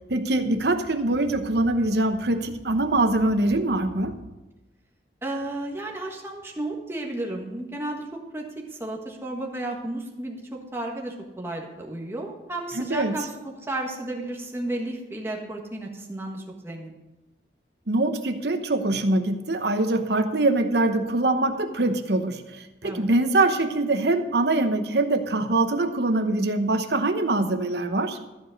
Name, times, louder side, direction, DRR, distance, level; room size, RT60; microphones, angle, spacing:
voice 1, 0.1-4.1 12.7-13.2 17.9-22.4 22.8-28.2, right 2 dB, 65° right, 7 dB, 1.0 m, -23 dB
voice 2, 5.2-10.4 10.7-16.9 22.8-23.0, right 1 dB, 15° right, 0 dB, 1.5 m, -33 dB
14.0 x 5.1 x 8.0 m, 1.1 s
head